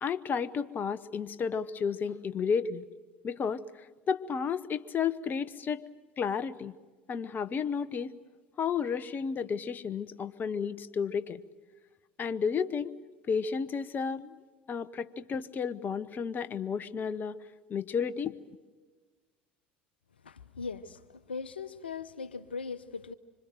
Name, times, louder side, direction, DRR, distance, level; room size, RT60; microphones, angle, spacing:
voice 1, 0.0-2.9 3.2-5.8 6.2-6.7 7.1-8.2 8.6-11.4 12.2-13.0 13.3-14.4 14.7-17.4 17.7-18.3, left 6 dB, 35° left, 14 dB, 1.1 m, -32 dB
voice 2, 20.2-21.0 21.3-23.1, left 5 dB, 90° left, 14 dB, 0.8 m, -39 dB
26.0 x 25.5 x 7.8 m, 1.3 s
hypercardioid pair, 70°, 5 cm